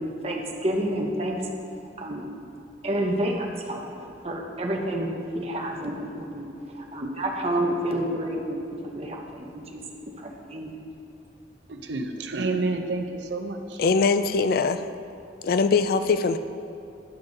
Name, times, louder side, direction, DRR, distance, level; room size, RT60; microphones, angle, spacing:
voice 1, 0.0-1.5 2.0-2.2 2.8-6.5 6.7-8.6 8.9-10.7, right 1 dB, 35° right, 1 dB, 0.9 m, -29 dB
voice 2, 11.7-13.8, right 3 dB, 85° right, 5 dB, 0.7 m, -29 dB
voice 3, 13.8-14.8 15.4-16.4, left 4 dB, 55° left, 10 dB, 0.3 m, -22 dB
11.5 x 5.4 x 3.9 m, 2.6 s
head